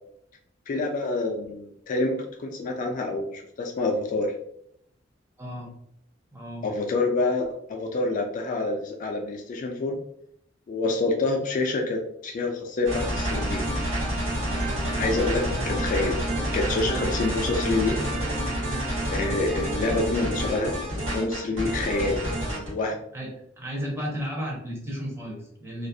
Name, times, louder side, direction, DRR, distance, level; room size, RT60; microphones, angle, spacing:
voice 1, 0.7-4.3 6.6-10.0 10.7-13.6 15.0-16.3 16.5-18.0 19.1-22.3 22.6-23.0, left 2 dB, 40° left, 2 dB, 0.3 m, -27 dB
voice 2, 5.4-5.7 6.3-6.7 15.4-15.6 23.1-23.3 23.6-25.9, equal, 15° right, -2 dB, 0.6 m, -33 dB
sound 1, 12.9-22.7, right 1 dB, 75° right, 1.2 m, -28 dB
2.3 x 2.0 x 2.6 m, 0.72 s
head